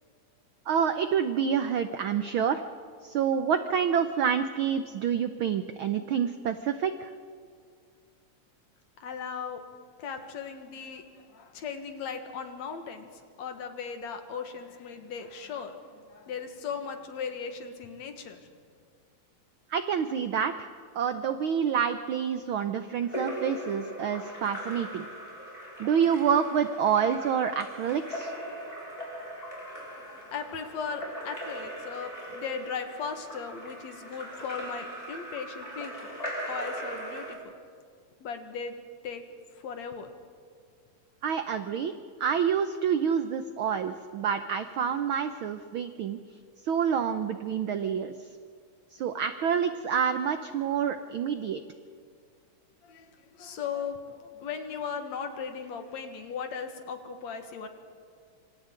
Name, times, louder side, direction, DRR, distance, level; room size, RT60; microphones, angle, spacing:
voice 1, 0.7-2.6 3.0-7.1 19.7-20.7 20.9-25.1 25.8-28.3 41.2-41.9 42.2-46.2 46.6-48.1 48.9-51.6, right 7 dB, 85° right, 9 dB, 1.1 m, -27 dB
voice 2, 9.0-9.6 10.0-13.1 13.4-18.4 29.9-36.1 36.5-37.5 38.2-38.7 39.0-39.2 39.6-40.1 52.8-57.7, left 6 dB, 70° left, 6 dB, 2.7 m, -37 dB
Splash splatter / Drip / Trickle dribble, 23.0-37.4, equal, 10° left, 5.1 m, -39 dB
27.0 x 26.0 x 3.8 m, 2.2 s
omnidirectional pair, 3.3 m